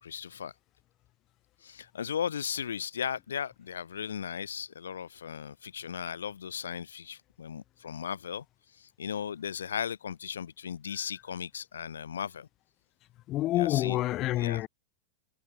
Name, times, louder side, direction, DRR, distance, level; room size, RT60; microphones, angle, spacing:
voice 1, 0.0-0.5 1.6-12.5 13.5-14.0 14.4-14.6, left 8 dB, 65° left, 2.9 m, -36 dB
voice 2, 13.3-14.7, left 16 dB, 35° left, 5.0 m, -27 dB
figure-of-eight pair, 90°, 0 cm